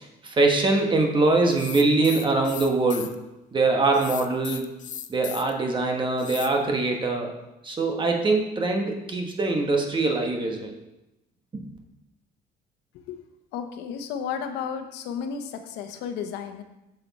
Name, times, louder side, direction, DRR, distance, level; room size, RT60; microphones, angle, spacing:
voice 1, 0.0-3.1 3.5-4.6 5.1-7.3 7.6-10.7 11.5-11.7, right 3 dB, 30° right, 2 dB, 1.3 m, -23 dB
sound 1, 1.5-3.1 3.9-5.5 6.2-6.5, left 10 dB, 50° left, 0.6 m, -37 dB
voice 2, 13.5-16.6, left 7 dB, 90° left, 7 dB, 0.9 m, -33 dB
7.7 x 7.0 x 4.1 m, 0.93 s
cardioid pair, 110°, 17 cm